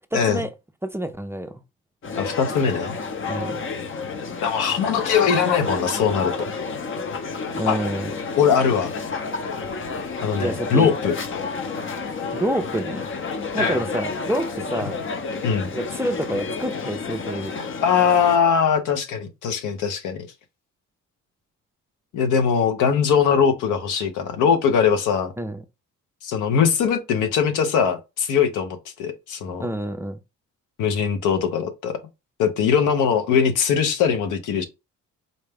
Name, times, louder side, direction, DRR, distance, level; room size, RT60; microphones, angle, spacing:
voice 1, 0.1-0.5 0.8-1.5 3.3-3.6 7.5-8.1 10.4-10.9 12.3-13.1 13.5-15.0 15.7-17.5 25.4-25.6 29.6-30.2, right 1 dB, 10° right, 0.4 m, -27 dB
sound 1, 2.0-18.4, left 4 dB, 40° left, 0.7 m, -30 dB
voice 2, 2.2-3.0 4.4-6.5 7.7-7.8 8.4-8.9 10.2-11.2 13.6-13.8 15.4-15.7 17.8-20.3 22.1-25.3 26.2-29.7 30.8-32.0 32.4-34.6, left 7 dB, 90° left, 0.8 m, -21 dB
4.0 x 2.2 x 3.4 m
cardioid pair, 90°, 30 cm